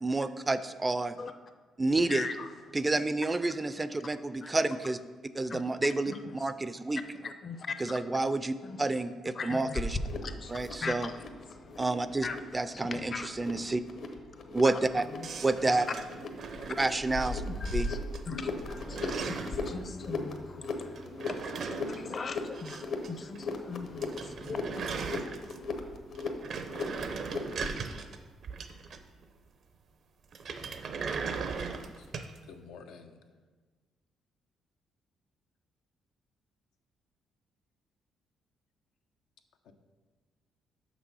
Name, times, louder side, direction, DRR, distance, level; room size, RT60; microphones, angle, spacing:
voice 1, 0.0-1.2 1.8-2.3 2.7-5.0 5.3-7.0 7.8-10.0 10.5-11.1 11.8-12.3 12.5-13.8 14.5-15.0 15.4-15.9 16.7-17.4 17.7-17.9, right 2 dB, 20° right, 13 dB, 0.4 m, -29 dB
voice 2, 7.2-7.9 8.6-8.8 9.4-9.8 10.2-10.5 10.8-11.1 12.2-12.4 12.7-13.3 13.5-13.7 15.2-15.3 17.4-18.0 18.3-24.6, left 4 dB, 45° left, 9 dB, 0.6 m, -40 dB
sound 1, 9.8-27.8, left 3 dB, 65° left, 0.9 m, -38 dB
sound 2, 15.2-17.3 17.6-18.2 18.5-19.7 20.9-23.1 23.3-23.4 23.7-23.8 24.0-25.8 26.1-29.2 30.3-32.4, right 5 dB, 60° right, 0.6 m, -38 dB
voice 3, 32.5-33.2 39.7-39.8, left 5 dB, 90° left, 5 dB, 0.6 m, -49 dB
6.2 x 6.1 x 5.4 m, 1.4 s
cardioid pair, 90°, 0 cm